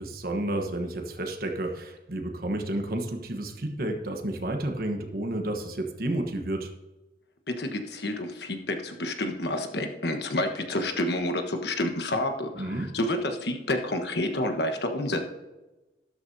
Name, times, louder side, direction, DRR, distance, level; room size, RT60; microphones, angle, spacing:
voice 1, 0.0-6.7 12.6-12.9, right 1 dB, 55° right, 4 dB, 1.2 m, -31 dB
voice 2, 7.5-15.2, left 1 dB, 70° left, 5 dB, 1.4 m, -29 dB
12.5 x 12.5 x 2.8 m, 1.1 s
head